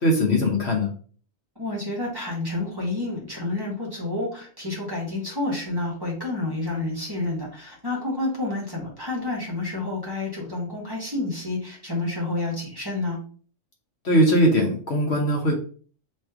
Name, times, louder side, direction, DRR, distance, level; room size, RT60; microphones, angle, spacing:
voice 1, 0.0-0.9 14.0-15.6, equal, 60° left, 1 dB, 1.3 m, -20 dB
voice 2, 1.5-13.2, left 2 dB, 20° right, -3 dB, 1.5 m, -29 dB
3.2 x 3.2 x 4.8 m, 0.42 s
omnidirectional pair, 1.3 m